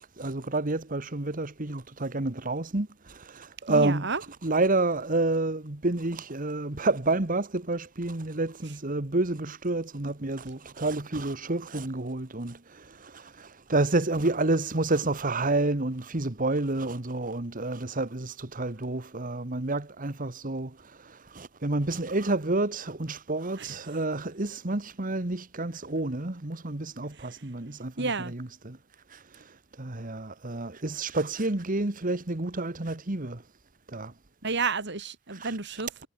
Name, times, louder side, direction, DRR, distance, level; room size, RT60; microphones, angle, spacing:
voice 1, 0.0-4.1 4.4-28.8 29.1-33.4 33.9-34.1 35.3-35.6, right 2 dB, 40° right, 1.6 m, -29 dB
voice 2, 3.7-4.2 23.6-23.7 28.0-28.3 34.4-36.1, right 4 dB, 55° right, 2.7 m, -30 dB
head